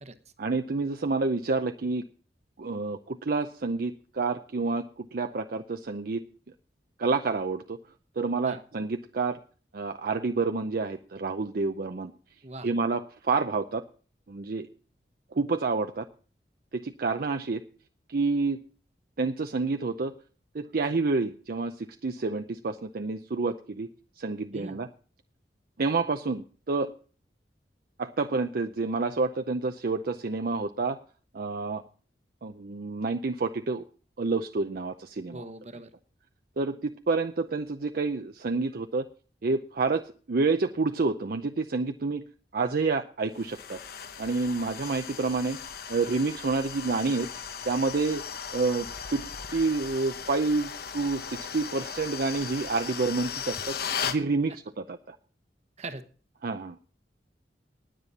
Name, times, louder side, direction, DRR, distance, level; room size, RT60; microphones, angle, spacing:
voice 1, 0.4-2.0 2.6-6.2 7.0-7.8 8.2-9.4 9.7-12.1 12.6-13.8 14.3-14.7 15.3-16.1 16.7-17.6 18.1-18.6 19.2-20.1 20.5-23.9 24.2-24.9 25.8-26.9 28.0-31.0 31.3-31.8 32.4-33.8 34.2-35.4 36.6-39.1 39.4-40.0 40.3-42.2 42.5-43.8 44.2-45.6 45.9-47.3 47.6-48.2 48.5-49.2 49.5-53.8 54.0-55.2 56.4-56.8, right 3 dB, 55° right, 7 dB, 0.6 m, -28 dB
voice 2, 35.3-35.9 55.8-56.0, right 2 dB, 40° right, 10 dB, 1.0 m, -40 dB
sound 1, 43.4-54.2, left 7 dB, 60° left, 0.9 m, -37 dB
19.5 x 7.6 x 4.1 m, 0.40 s
head